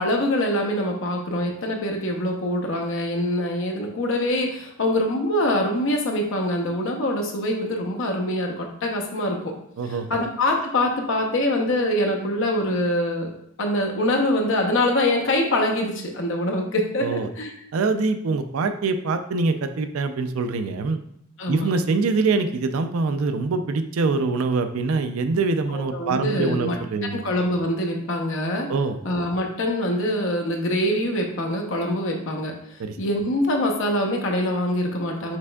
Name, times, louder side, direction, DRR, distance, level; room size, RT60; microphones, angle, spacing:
voice 1, 0.0-9.5 9.9-13.3 13.6-17.5 21.4-21.7 25.7-26.8 27.1-28.7 29.0-32.5 33.0-35.4, left 1 dB, 60° left, 2 dB, 0.8 m, -24 dB
voice 2, 9.8-10.2 17.0-17.3 17.7-21.0 21.5-27.2 28.7-29.0 32.8-33.0, right 3 dB, 75° right, 9 dB, 0.4 m, -24 dB
5.9 x 3.5 x 2.2 m, 0.74 s
head